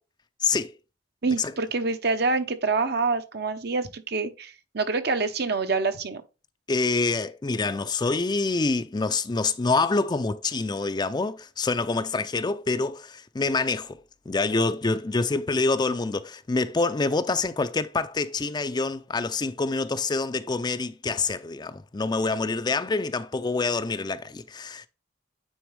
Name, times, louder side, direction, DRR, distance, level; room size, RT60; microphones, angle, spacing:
voice 1, 0.4-0.7 1.4-1.5 6.7-14.0 14.3-24.9, left 3 dB, 25° left, 0.4 m, -26 dB
voice 2, 1.2-6.2, right 3 dB, 60° right, 0.9 m, -26 dB
9.3 x 4.0 x 3.3 m
head